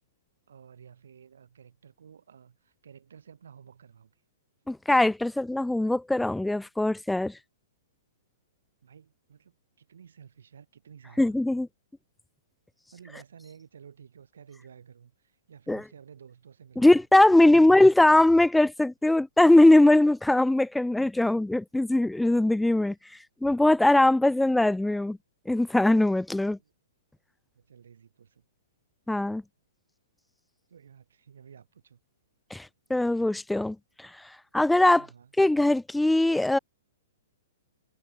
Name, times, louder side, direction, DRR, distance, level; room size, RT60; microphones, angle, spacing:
voice 1, 0.5-4.1 8.8-11.4 12.9-17.0 17.4-18.2 26.6-26.7 27.5-28.5 30.7-32.0 34.9-35.3, right 7 dB, 85° right, 4.9 m, -52 dB
voice 2, 4.7-7.3 11.2-11.7 15.7-15.8 16.8-22.9 23.4-25.2 25.5-26.6 29.1-29.4 32.5-34.1 34.5-35.1 35.4-36.6, left 1 dB, 5° left, 0.4 m, -21 dB
hypercardioid pair, 155°, 0 cm